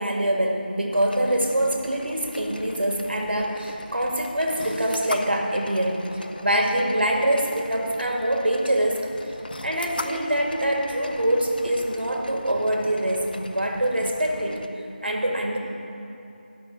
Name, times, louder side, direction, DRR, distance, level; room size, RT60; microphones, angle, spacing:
voice 1, 0.0-9.4 9.6-14.6 15.0-15.6, right 1 dB, 75° right, 1 dB, 2.0 m, -24 dB
sound 1, 0.9-14.7, left 1 dB, 60° left, 0.7 m, -39 dB
10.5 x 6.1 x 8.0 m, 2.8 s
figure-of-eight pair, 180°, 6 cm